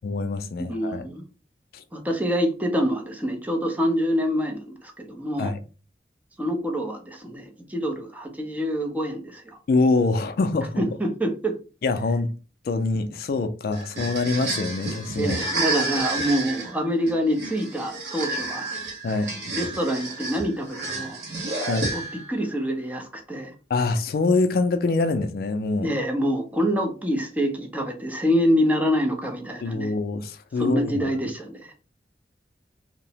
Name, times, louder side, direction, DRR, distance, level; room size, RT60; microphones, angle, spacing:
voice 1, 0.0-1.1 1.7-1.8 5.4-5.6 9.7-10.8 11.8-12.3 12.7-15.5 19.0-19.3 21.6-21.9 23.7-25.9 29.6-31.1, left 3 dB, 55° left, 0.3 m, -24 dB
voice 2, 0.6-1.2 1.9-5.5 6.4-9.6 10.8-11.6 15.2-18.7 19.1-19.2 19.5-21.2 21.9-22.0 22.3-23.5 25.8-29.9 30.6-31.7, equal, 10° right, 0.5 m, -26 dB
sound 1, 13.7-22.4, right 2 dB, 65° right, 0.8 m, -30 dB
2.8 x 2.0 x 2.7 m
head